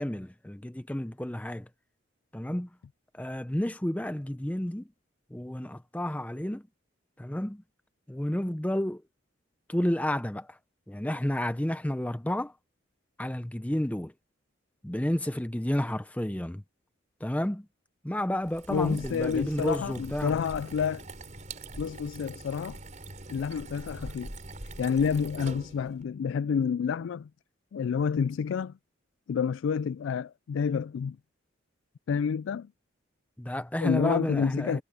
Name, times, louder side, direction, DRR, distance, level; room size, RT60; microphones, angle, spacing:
voice 1, 0.0-1.7 2.3-2.7 3.1-4.9 5.3-6.6 7.2-7.6 8.1-9.0 9.7-10.6 10.9-12.5 13.2-14.1 14.8-16.6 17.2-17.7 18.0-20.3 33.4-34.8, left 1 dB, 5° left, 0.5 m, -31 dB
sound 1, 18.4-26.0, right 2 dB, 35° right, 5.4 m, -43 dB
voice 2, 18.7-21.0 21.8-22.8 23.3-24.3 24.8-27.3 27.7-28.8 29.3-31.2 32.1-32.7 33.8-34.8, left 6 dB, 70° left, 0.3 m, -29 dB
head